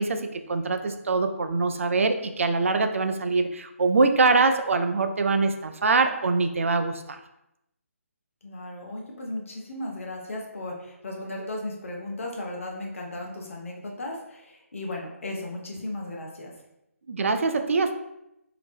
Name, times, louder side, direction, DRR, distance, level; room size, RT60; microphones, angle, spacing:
voice 1, 0.0-7.2 17.1-17.9, right 3 dB, 60° right, 7 dB, 0.4 m, -23 dB
voice 2, 8.4-16.5, left 1 dB, 60° left, 0 dB, 0.8 m, -36 dB
3.0 x 2.9 x 3.3 m, 0.86 s
figure-of-eight pair, 150°, 8 cm